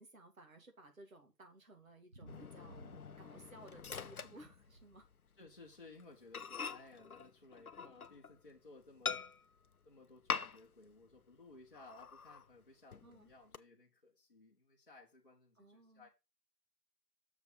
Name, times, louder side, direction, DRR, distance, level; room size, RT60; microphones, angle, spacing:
voice 1, 0.0-2.8 3.2-5.1 13.0-13.3 15.6-16.1, right 1 dB, 55° right, 2.3 m, -58 dB
sound 1, 1.9-3.9 4.2-4.8 5.8-5.9 6.3-6.4 6.6-6.7, right 2 dB, 35° right, 1.4 m, -58 dB
Microwave oven, 2.3-5.1 5.5-5.7 6.0-6.1 6.3-8.4 9.0-9.7 10.3-10.9 11.1-11.2 11.7-12.5 12.9-13.6, left 5 dB, 65° left, 0.7 m, -44 dB
voice 2, 5.4-9.2 9.8-16.1, left 3 dB, 35° left, 1.1 m, -59 dB
7.0 x 4.7 x 5.5 m
figure-of-eight pair, 155°, 48 cm